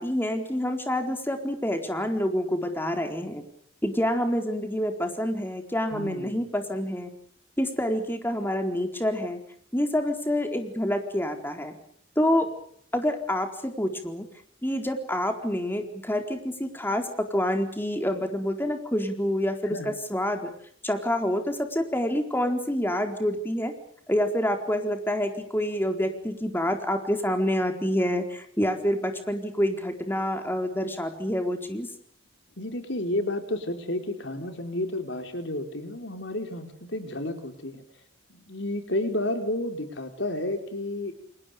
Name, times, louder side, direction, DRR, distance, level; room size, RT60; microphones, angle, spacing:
voice 1, 0.0-3.4 3.8-7.1 7.6-9.4 9.7-11.7 12.2-12.5 12.9-14.2 14.6-20.5 20.8-23.7 24.1-31.9, equal, 10° left, 5 dB, 4.2 m, -27 dB
voice 2, 5.9-6.4 19.7-20.0 32.6-37.8 38.3-41.1, left 1 dB, 65° left, 6 dB, 4.6 m, -31 dB
29.5 x 29.5 x 5.2 m, 0.63 s
head